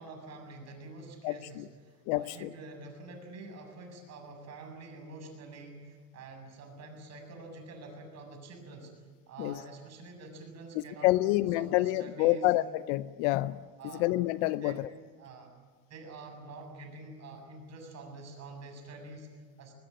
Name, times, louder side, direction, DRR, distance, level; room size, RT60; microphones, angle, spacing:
voice 1, 0.0-12.6 13.8-14.1 14.6-14.8 15.2-15.5 15.9-19.7, right 2 dB, 35° right, 7.4 m, -47 dB
voice 2, 1.2-1.7 2.1-2.5 9.4-9.6 10.8-13.7 14.0-14.9, left 17 dB, 50° left, 0.7 m, -28 dB
21.0 x 20.5 x 10.0 m
supercardioid pair, 125°, 47 cm